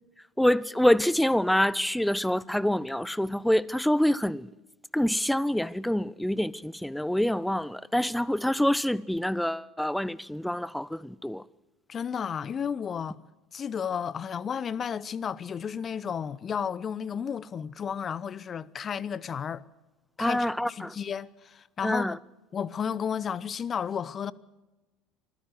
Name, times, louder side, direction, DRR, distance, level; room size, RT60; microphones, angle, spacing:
voice 1, 0.4-4.5 4.9-11.4 20.2-21.0 21.8-22.2, left 1 dB, 5° left, 0.7 m, -26 dB
voice 2, 11.9-13.2 13.5-19.6 20.2-22.1 22.5-24.3, left 7 dB, 35° left, 0.8 m, -32 dB
25.0 x 15.0 x 7.8 m
figure-of-eight pair, 70°, 0 cm